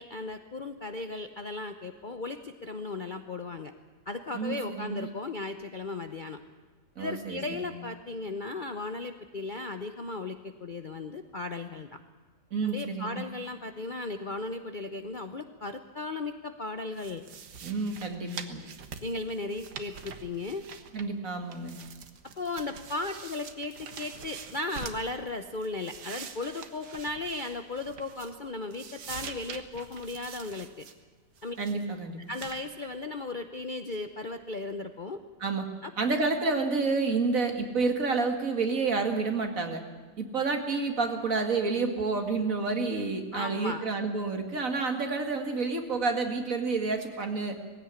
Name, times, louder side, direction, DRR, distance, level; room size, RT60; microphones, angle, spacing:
voice 1, 0.0-3.7 4.1-6.4 7.0-12.0 12.6-17.2 19.0-20.6 22.4-30.9 31.4-31.6 32.3-35.2 35.8-35.9 43.3-43.8, left 2 dB, 40° left, 8 dB, 0.7 m, -36 dB
voice 2, 4.3-5.1 7.0-7.7 12.5-13.2 17.6-18.7 20.9-21.8 31.6-32.2 35.4-35.7 36.0-39.8 40.2-47.6, right 4 dB, 50° right, 5 dB, 2.5 m, -29 dB
sound 1, 17.0-21.3 21.5-25.1 25.5-28.4 28.7-30.9 31.4-31.8 32.3-32.6, right 6 dB, 75° right, 1.9 m, -45 dB
19.5 x 16.0 x 9.7 m, 1.4 s
omnidirectional pair, 1.8 m